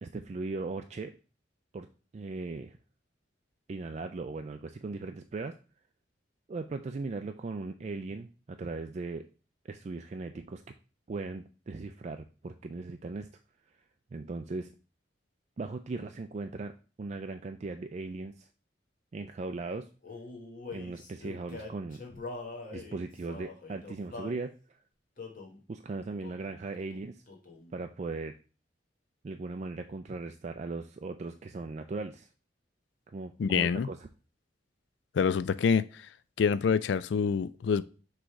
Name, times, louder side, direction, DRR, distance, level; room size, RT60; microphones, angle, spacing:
voice 1, 0.0-1.1 1.7-1.9 2.1-2.8 3.7-5.6 6.5-9.3 9.6-10.7 11.1-13.3 14.1-14.7 15.6-18.5 19.1-19.9 20.7-22.0 22.7-24.8 25.7-27.2 27.7-28.4 29.2-32.3 33.1-34.1, right 3 dB, 40° right, 7 dB, 0.3 m, -38 dB
Male singing, 20.0-24.4 25.2-25.6 26.2-26.5 26.8-27.7, left 3 dB, 45° left, 1.3 m, -44 dB
voice 2, 33.4-33.9 35.1-35.9 36.4-37.8, left 6 dB, 75° left, 15 dB, 0.3 m, -26 dB
6.3 x 3.2 x 4.6 m, 0.35 s
head